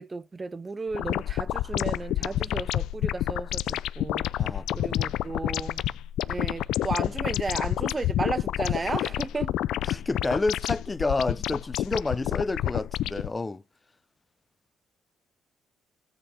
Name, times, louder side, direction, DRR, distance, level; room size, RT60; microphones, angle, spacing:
voice 1, 0.0-4.2 4.7-5.8 6.3-9.5, right 3 dB, 25° right, 0.4 m, -34 dB
sound 1, 0.9-13.3, left 13 dB, 80° left, 0.4 m, -29 dB
voice 2, 4.4-5.2 9.8-13.6, left 3 dB, 20° left, 0.6 m, -29 dB
9.7 x 3.4 x 4.9 m
cardioid pair, 100°, 0 cm